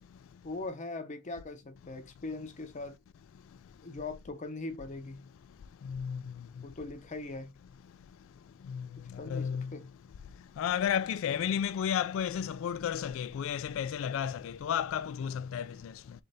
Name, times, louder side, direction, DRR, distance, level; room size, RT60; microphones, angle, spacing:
voice 1, 0.4-2.9 3.8-5.2 6.6-7.5 9.2-9.9, left 2 dB, 35° left, 0.7 m, -40 dB
voice 2, 5.8-6.2 8.7-8.9 9.3-9.7 10.6-15.9, left 8 dB, 65° left, 0.3 m, -32 dB
3.7 x 3.4 x 4.0 m
head